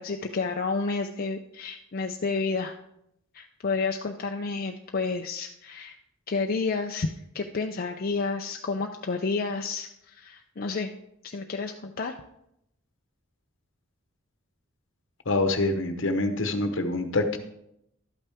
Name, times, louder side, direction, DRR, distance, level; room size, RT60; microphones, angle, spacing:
voice 1, 0.0-2.8 3.3-6.0 6.3-7.1 7.3-10.9 11.2-12.2, left 4 dB, 45° left, 3 dB, 0.5 m, -30 dB
voice 2, 15.3-17.4, left 2 dB, 65° left, 8 dB, 1.0 m, -25 dB
12.0 x 8.5 x 3.5 m, 0.79 s
head